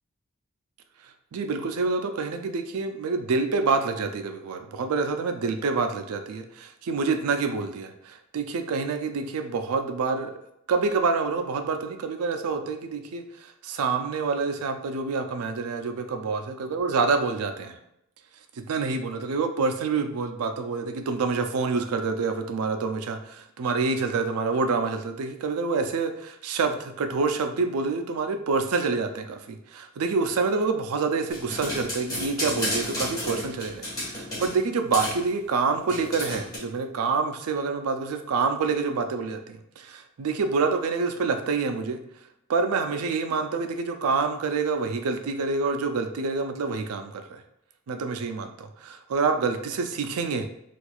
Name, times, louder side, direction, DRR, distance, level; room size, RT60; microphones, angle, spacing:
voice 1, 1.3-10.3 10.7-17.8 18.7-42.0 42.5-47.4 47.9-50.5, right 4 dB, 80° right, 6 dB, 0.4 m, -27 dB
sound 1, 31.3-34.6 34.9-35.2 35.9-36.6, left 1 dB, 15° left, 1.4 m, -32 dB
4.3 x 2.3 x 2.3 m, 0.79 s
head